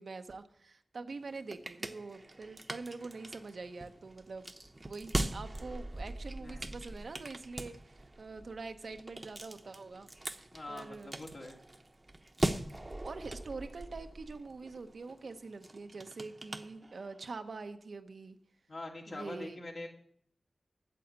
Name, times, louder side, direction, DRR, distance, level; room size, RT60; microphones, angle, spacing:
voice 1, 0.0-4.5 4.8-10.4 10.7-11.1 13.0-18.4 19.1-19.6, right 3 dB, 75° right, 8 dB, 0.9 m, -45 dB
sound 1, 1.1-17.3, right 1 dB, 35° right, 0.9 m, -41 dB
voice 2, 6.4-6.7 10.5-11.6 18.7-19.9, left 2 dB, 65° left, 0 dB, 2.8 m, -44 dB
9.0 x 7.8 x 8.0 m, 0.65 s
cardioid pair, 40°, 0 cm